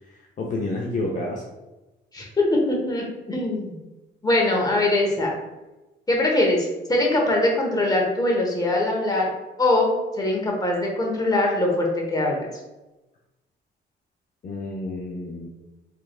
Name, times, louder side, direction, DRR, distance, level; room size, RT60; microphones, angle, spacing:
voice 1, 0.1-1.4 14.4-15.5, left 2 dB, 40° left, -1 dB, 0.6 m, -30 dB
voice 2, 2.1-3.8 4.2-5.3 6.1-9.3 9.6-12.5, left 2 dB, 20° left, -1 dB, 1.1 m, -22 dB
4.6 x 3.3 x 2.4 m, 1.0 s
cardioid pair, 90°, 20 cm